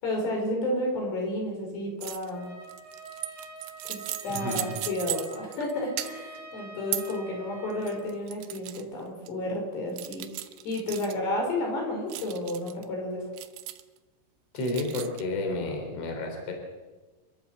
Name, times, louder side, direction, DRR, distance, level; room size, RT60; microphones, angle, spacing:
voice 1, 0.0-2.5 3.8-4.0 4.2-10.3 10.7-13.2, left 1 dB, 60° left, 0 dB, 7.0 m, -31 dB
sound 1, 2.0-2.3 2.6-5.7 6.0-6.4 6.9-7.2 7.7-8.8 9.3-9.4 10.0-11.2 12.1-12.8 13.4-14.0 14.6-15.2, right 15 dB, 75° right, 2.9 m, -37 dB
Trumpet, 2.3-8.2, right 3 dB, 60° right, 4.2 m, -45 dB
voice 2, 4.3-4.8 14.5-16.5, left 2 dB, 35° left, 2 dB, 4.0 m, -31 dB
28.5 x 12.5 x 7.6 m, 1.3 s
omnidirectional pair, 5.4 m